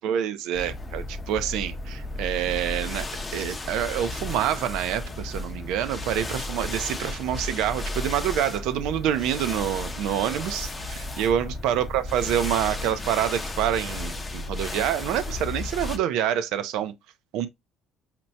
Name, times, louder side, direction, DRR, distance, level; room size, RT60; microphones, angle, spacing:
voice 1, 0.0-3.1 3.3-16.9 17.3-17.5, right 10 dB, 70° right, 0.5 m, -27 dB
sound 1, 0.5-16.0, left 2 dB, 15° left, 0.6 m, -34 dB
5.8 x 2.1 x 2.6 m
cardioid pair, 155°, 0 cm